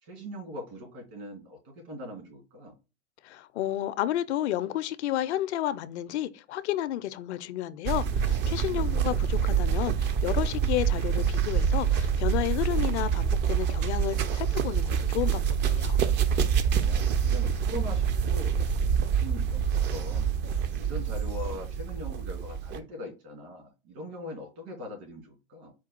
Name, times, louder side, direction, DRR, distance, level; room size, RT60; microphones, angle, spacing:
voice 1, 0.0-2.7 16.7-18.7 19.0-20.3 20.8-25.7, left 1 dB, 60° right, 2.6 m, -41 dB
voice 2, 3.2-16.0, left 13 dB, 70° left, 0.5 m, -31 dB
sound 1, 7.9-22.8, right 7 dB, 30° right, 0.5 m, -26 dB
4.5 x 2.3 x 4.2 m
hypercardioid pair, 100°, 35 cm